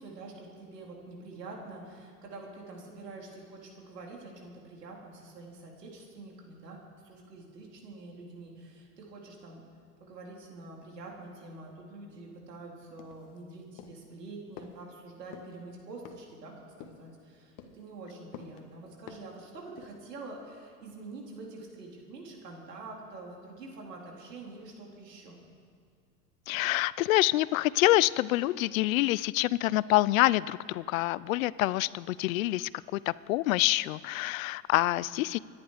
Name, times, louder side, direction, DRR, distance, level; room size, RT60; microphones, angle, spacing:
voice 1, 0.0-6.8 7.0-9.6 10.0-25.4 35.0-35.3, right 2 dB, 85° right, -1 dB, 3.9 m, -46 dB
sound 1, 13.0-13.4 13.8-14.1 14.6-14.8 15.3-15.6 16.1-16.4 16.8-17.1 17.6-17.9 18.3-18.6 19.1-19.4 19.8-20.1, left 8 dB, 40° left, 1.6 m, -48 dB
voice 2, 26.5-35.4, left 17 dB, 60° left, 20 dB, 0.5 m, -26 dB
25.5 x 10.5 x 5.0 m, 2.2 s
hypercardioid pair, 105°, 47 cm